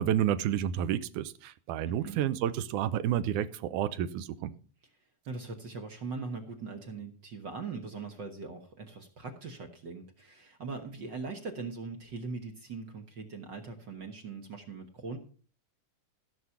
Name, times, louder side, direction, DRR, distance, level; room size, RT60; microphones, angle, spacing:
voice 1, 0.0-4.5, right 10 dB, 75° right, 2.2 m, -30 dB
voice 2, 1.9-2.3 5.3-15.2, right 4 dB, 55° right, 1.3 m, -41 dB
15.5 x 6.3 x 5.7 m
omnidirectional pair, 3.7 m